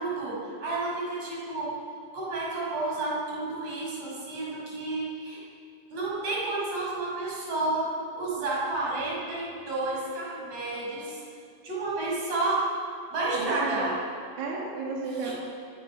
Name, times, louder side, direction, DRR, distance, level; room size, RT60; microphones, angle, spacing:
voice 1, 0.0-1.8 2.1-5.4 5.9-11.2 11.6-12.7 13.1-14.0 15.2-15.3, right 2 dB, 35° right, -5 dB, 6.9 m, -31 dB
voice 2, 13.3-13.9 14.4-15.3, right 3 dB, 85° right, -3 dB, 5.0 m, -33 dB
23.5 x 18.0 x 6.2 m, 2.5 s
omnidirectional pair, 5.3 m